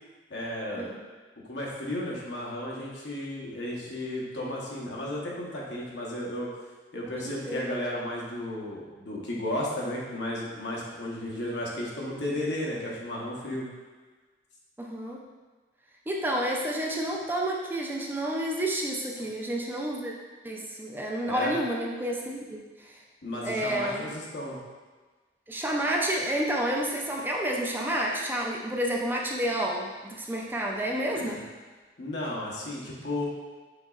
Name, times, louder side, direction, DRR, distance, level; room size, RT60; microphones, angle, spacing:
voice 1, 0.3-0.9 1.4-6.5 6.9-13.7 21.3-21.5 23.2-24.6 31.2-31.4 32.0-33.3, left 1 dB, 90° left, -4 dB, 1.0 m, -33 dB
voice 2, 7.2-7.8 14.8-15.2 16.1-20.1 20.4-23.0 23.4-24.1 25.5-31.4, right 1 dB, 10° right, -1 dB, 0.4 m, -30 dB
5.2 x 3.9 x 2.4 m, 1.3 s
head